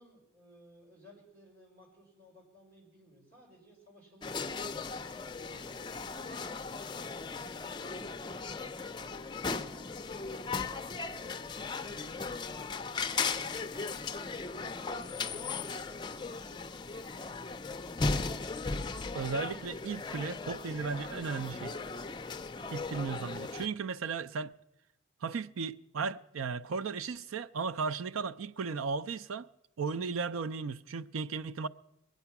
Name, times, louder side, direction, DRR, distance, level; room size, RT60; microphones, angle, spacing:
voice 1, 0.0-17.7, equal, 50° right, 5.1 m, -59 dB
sound 1, 4.2-23.7, left 4 dB, 20° left, 0.4 m, -37 dB
voice 2, 19.1-21.8 22.7-24.5 25.2-29.5 29.8-31.7, right 5 dB, 80° right, 0.5 m, -35 dB
21.5 x 9.1 x 5.9 m
head